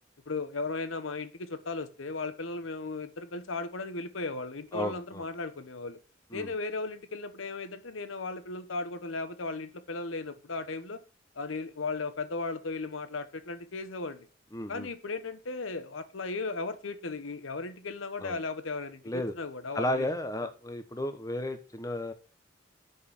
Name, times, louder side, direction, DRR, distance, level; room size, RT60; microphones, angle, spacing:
voice 1, 0.3-6.0 6.3-11.0 11.3-14.3 14.7-20.1, left 3 dB, 80° left, 10 dB, 1.0 m, -36 dB
voice 2, 4.7-5.2 6.3-6.5 14.5-14.9 18.2-18.4 19.0-19.3 19.7-22.1, left 1 dB, 15° left, 8 dB, 0.9 m, -33 dB
6.5 x 5.5 x 7.1 m, 0.37 s
head